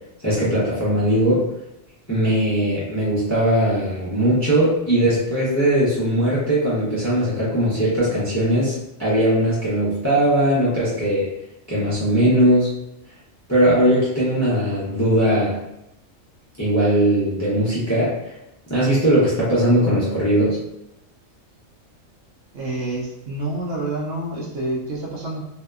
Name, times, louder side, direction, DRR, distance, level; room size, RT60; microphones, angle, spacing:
voice 1, 0.2-1.4 2.1-11.3 11.7-12.7 13.5-15.6 16.6-18.1 18.7-20.6, right 1 dB, 20° left, -8 dB, 0.4 m, -19 dB
voice 2, 22.5-25.5, right 2 dB, 75° right, -2 dB, 0.9 m, -28 dB
2.7 x 2.1 x 2.3 m, 0.85 s
omnidirectional pair, 1.4 m